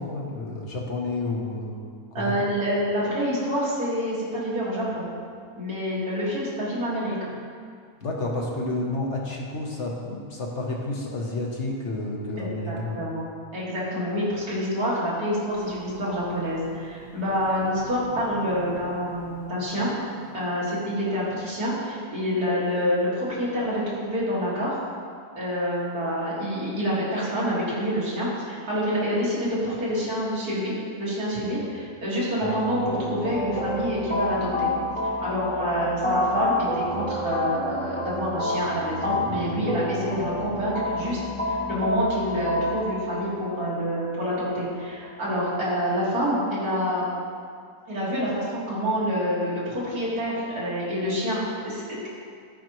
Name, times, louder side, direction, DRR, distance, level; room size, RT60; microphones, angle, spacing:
voice 1, 0.0-1.8 2.1-2.4 8.0-13.0, left 2 dB, 55° left, -1 dB, 1.2 m, -30 dB
voice 2, 2.1-5.0 5.6-7.3 12.4-13.2 13.5-19.9 20.3-24.8 25.4-34.7 35.2-41.2 41.5-47.1 47.9-51.8, equal, 80° right, -8 dB, 2.5 m, -27 dB
Singing, 15.5-21.0, right 2 dB, 60° right, 2.0 m, -44 dB
sound 1, 32.4-45.4, left 1 dB, 10° left, 0.7 m, -29 dB
12.5 x 5.0 x 3.0 m, 2.2 s
omnidirectional pair, 1.6 m